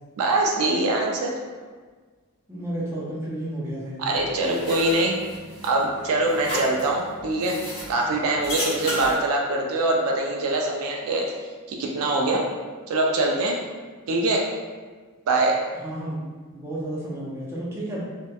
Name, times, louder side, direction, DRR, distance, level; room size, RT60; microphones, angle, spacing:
voice 1, 0.2-1.3 4.0-5.2 5.6-7.6 7.9-11.3 11.7-12.4 12.9-13.6 14.1-14.5 15.3-15.6, right 2 dB, 65° right, 0 dB, 0.3 m, -23 dB
voice 2, 2.5-4.2 15.8-16.2 16.5-18.0, right 1 dB, 10° right, -6 dB, 0.5 m, -32 dB
sound 1, 4.1-9.2, left 1 dB, 25° left, 0.8 m, -33 dB
2.7 x 2.1 x 2.2 m, 1.4 s
head